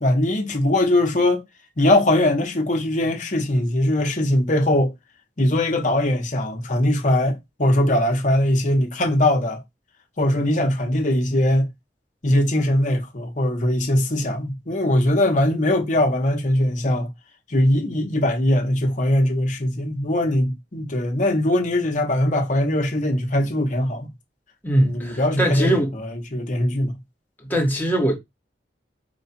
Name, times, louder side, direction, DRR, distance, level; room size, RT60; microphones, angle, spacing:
voice 1, 0.0-1.4 1.8-4.9 5.4-9.6 10.2-11.7 12.2-17.1 17.5-24.1 24.7-26.9 27.5-27.7, left 1 dB, 45° left, 1.2 m, -21 dB
voice 2, 24.6-25.9 27.4-28.2, right 1 dB, 10° left, 1.3 m, -21 dB
4.9 x 2.5 x 4.3 m
head